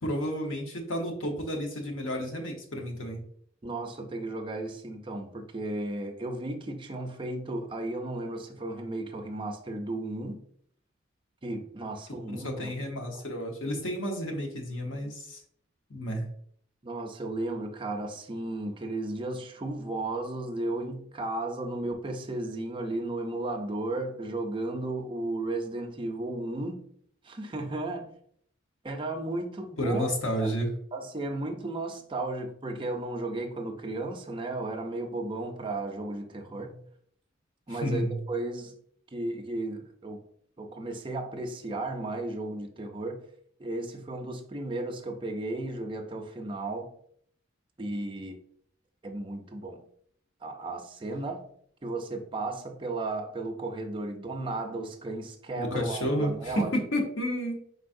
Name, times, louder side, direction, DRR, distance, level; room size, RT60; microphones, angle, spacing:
voice 1, 0.0-3.2 12.1-15.4 15.9-16.3 29.8-30.7 37.7-38.2 55.5-57.6, equal, 80° left, 1.1 m, -31 dB
voice 2, 3.6-10.4 11.4-12.8 16.8-26.9 27.2-28.1 28.8-30.1 30.4-30.5 30.9-36.7 37.7-38.7 39.1-40.2 40.6-43.2 43.6-46.9 47.8-48.4 49.0-49.8 50.4-51.4 51.8-56.7, right 2 dB, 25° right, 0.6 m, -34 dB
4.6 x 4.0 x 2.6 m
head